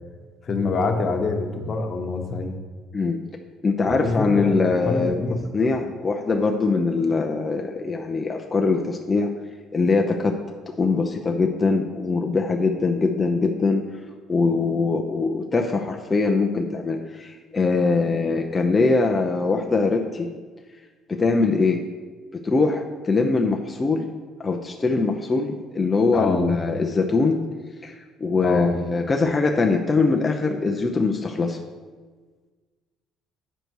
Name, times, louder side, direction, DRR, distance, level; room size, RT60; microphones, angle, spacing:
voice 1, 0.4-2.6 3.9-5.4 26.1-26.5 28.4-28.7, left 3 dB, 40° left, 3 dB, 1.2 m, -25 dB
voice 2, 3.6-5.2 5.5-9.3 9.7-10.4 10.7-13.9 14.3-20.3 21.1-21.8 22.3-24.1 24.4-27.4 27.8-31.6, left 3 dB, 20° left, 2 dB, 0.7 m, -22 dB
9.0 x 6.6 x 4.7 m, 1.4 s
cardioid pair, 110°, 0 cm